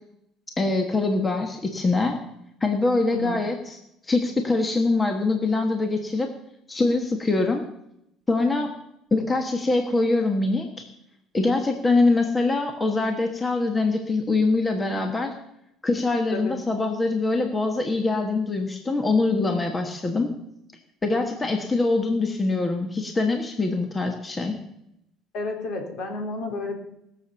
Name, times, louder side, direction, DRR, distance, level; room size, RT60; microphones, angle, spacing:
voice 1, 0.6-2.2 2.6-3.8 4.0-6.3 6.7-7.6 8.3-8.7 9.1-10.7 11.3-15.3 15.8-20.3 21.0-24.5, left 3 dB, 15° left, 4 dB, 1.3 m, -23 dB
voice 2, 25.3-26.7, left 2 dB, 60° left, 3 dB, 3.8 m, -31 dB
19.0 x 7.0 x 7.0 m, 0.80 s
cardioid pair, 140°, 0 cm